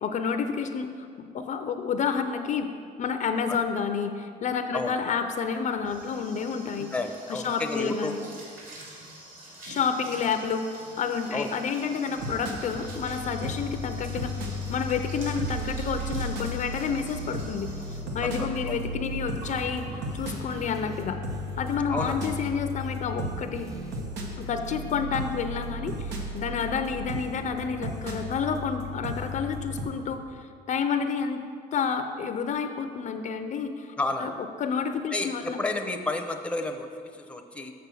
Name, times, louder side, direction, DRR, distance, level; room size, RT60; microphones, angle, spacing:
voice 1, 0.0-2.7 3.0-6.9 7.3-8.2 9.6-17.7 18.1-19.9 20.1-21.2 21.6-23.7 24.4-31.4 31.7-34.3 34.6-35.6, left 6 dB, 45° left, 7 dB, 0.5 m, -30 dB
sound 1, 5.4-21.1 21.5-21.8 22.1-22.2 22.5-22.8, right 1 dB, 55° right, 2.4 m, -47 dB
voice 2, 6.8-8.1 11.3-11.5 18.2-18.8 21.9-22.2 34.0-34.3 35.1-37.7, left 2 dB, 5° left, 5 dB, 0.6 m, -31 dB
sound 2, 12.2-29.8, equal, 90° right, 1.2 m, -35 dB
sound 3, 12.6-18.0 18.3-21.0 21.3-24.4, equal, 20° right, 0.9 m, -49 dB
6.9 x 6.3 x 6.1 m, 2.2 s
cardioid pair, 110°, 17 cm